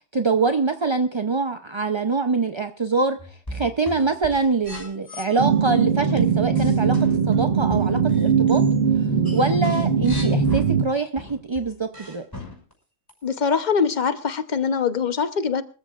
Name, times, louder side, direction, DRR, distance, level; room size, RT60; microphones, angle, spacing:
voice 1, 0.1-3.2 3.5-7.0 7.3-8.6 9.3-12.3, right 4 dB, 35° right, 7 dB, 0.5 m, -24 dB
sound 1, 3.2-5.3 6.2-8.7 9.0-10.6 11.2-12.7 13.1-13.2, left 1 dB, 10° left, 5.9 m, -37 dB
sound 2, 5.4-10.8, right 6 dB, 50° right, 1.8 m, -20 dB
voice 2, 13.2-15.6, left 6 dB, 40° left, 10 dB, 0.9 m, -23 dB
25.0 x 14.5 x 2.5 m, 0.38 s
omnidirectional pair, 1.4 m